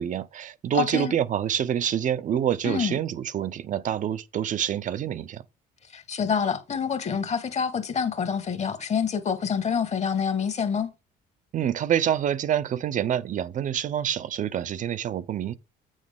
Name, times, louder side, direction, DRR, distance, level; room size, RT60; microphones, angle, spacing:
voice 1, 0.0-5.4 11.5-15.5, right 10 dB, 50° right, 0.7 m, -27 dB
voice 2, 0.7-1.1 2.6-2.9 5.9-10.9, left 6 dB, 40° left, 1.5 m, -27 dB
8.5 x 6.3 x 3.6 m
cardioid pair, 110°, 17 cm